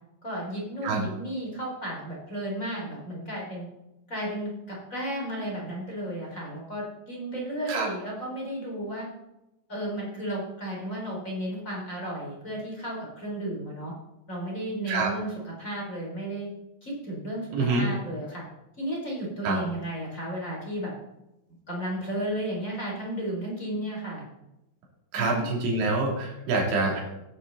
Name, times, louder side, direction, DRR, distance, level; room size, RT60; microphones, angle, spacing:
voice 1, 0.2-3.7 4.1-9.1 9.7-13.9 14.3-16.5 16.8-18.4 18.8-20.9 21.7-24.3 25.1-25.5, right 1 dB, 20° left, -3 dB, 4.2 m, -33 dB
voice 2, 17.5-17.9 19.4-19.6 25.1-27.0, right 3 dB, 75° right, -3 dB, 5.4 m, -26 dB
16.5 x 11.0 x 4.2 m, 0.93 s
omnidirectional pair, 5.2 m